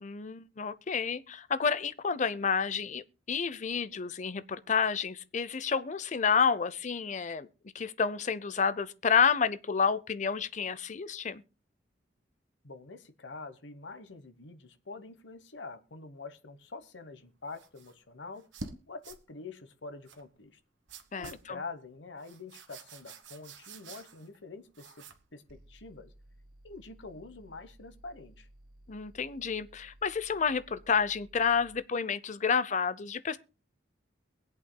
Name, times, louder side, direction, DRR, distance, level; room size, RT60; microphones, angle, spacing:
voice 1, 0.0-7.5 7.7-11.4 21.1-21.6 28.9-33.4, left 6 dB, 40° left, 0.6 m, -30 dB
voice 2, 12.6-18.4 18.9-20.6 21.2-25.1 25.3-26.1 26.6-28.5, left 3 dB, 70° left, 1.1 m, -46 dB
sound 1, 17.5-17.9 18.4-18.8 19.0-19.2 20.1-20.2 20.9-21.5 22.2-24.4 24.7-25.3, right 3 dB, 80° right, 1.2 m, -47 dB
sound 2, 25.5-31.9, right 1 dB, 50° right, 4.7 m, -57 dB
23.0 x 8.3 x 2.2 m
head